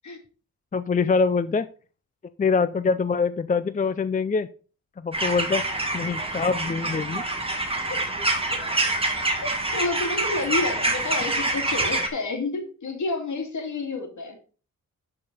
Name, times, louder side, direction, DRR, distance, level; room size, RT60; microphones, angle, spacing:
voice 1, 0.7-1.7 2.4-4.5 5.0-5.6 5.9-7.2, left 5 dB, 25° left, 13 dB, 0.4 m, -24 dB
sound 1, 5.1-12.1, right 2 dB, 20° right, 2.0 m, -26 dB
voice 2, 9.4-14.4, left 3 dB, 65° left, 4 dB, 2.7 m, -30 dB
11.5 x 4.9 x 5.4 m, 0.38 s
wide cardioid pair, 120°, 32 cm